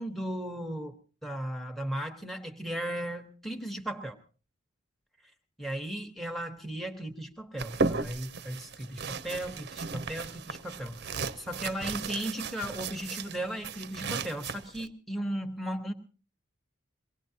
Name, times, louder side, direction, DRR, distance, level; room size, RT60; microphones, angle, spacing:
voice 1, 0.0-4.2 5.6-15.9, right 1 dB, ahead, 5 dB, 1.0 m, -36 dB
sound 1, 7.6-14.9, right 4 dB, 55° right, 0.6 m, -35 dB
23.5 x 18.0 x 2.8 m, 0.38 s
head